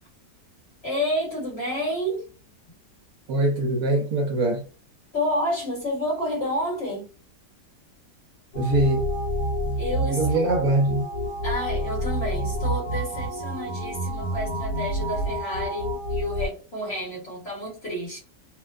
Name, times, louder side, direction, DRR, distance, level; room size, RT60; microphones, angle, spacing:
voice 1, 0.8-2.2 5.1-7.1 9.8-10.3 11.4-18.2, equal, 40° left, 1.2 m, -29 dB
voice 2, 3.3-4.6 8.5-9.1 10.0-11.1, right 2 dB, 65° right, 0.9 m, -23 dB
sound 1, 8.5-16.5, equal, 80° left, 1.3 m, -28 dB
2.9 x 2.1 x 2.3 m
omnidirectional pair, 1.8 m